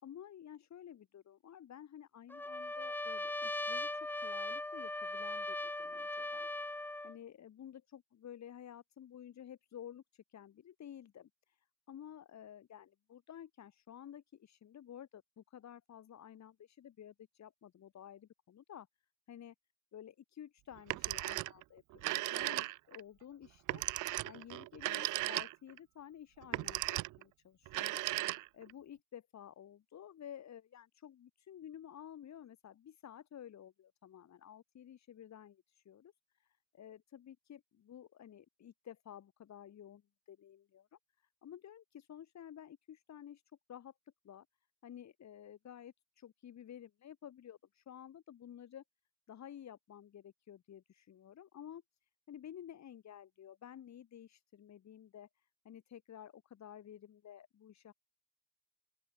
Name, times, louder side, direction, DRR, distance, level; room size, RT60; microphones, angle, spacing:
voice 1, 0.0-18.9 19.3-19.6 19.9-23.8 24.2-41.0 41.4-43.4 43.7-43.9 44.2-44.5 44.8-48.8 49.3-51.8 52.3-57.9, left 10 dB, 65° left, 7.0 m, -53 dB
Trumpet, 2.3-7.2, left 1 dB, 5° left, 0.6 m, -39 dB
Telephone, 20.8-21.6 21.9-23.0 23.7-25.8 26.4-27.2 27.7-28.7, right 19 dB, 85° right, 0.5 m, -36 dB
open air
cardioid pair, 90°, 30 cm